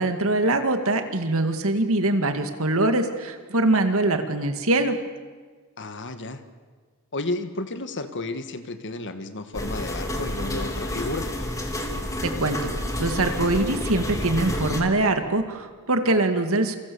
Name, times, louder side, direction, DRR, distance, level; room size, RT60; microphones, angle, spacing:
voice 1, 0.0-5.0 12.2-12.7 13.0-16.8, right 2 dB, 65° right, 7 dB, 2.2 m, -23 dB
voice 2, 5.8-6.4 7.1-11.3, left 2 dB, 55° left, 9 dB, 1.7 m, -32 dB
sound 1, 9.5-14.8, left 1 dB, 15° left, 2.7 m, -29 dB
28.5 x 23.5 x 7.1 m, 1.5 s
head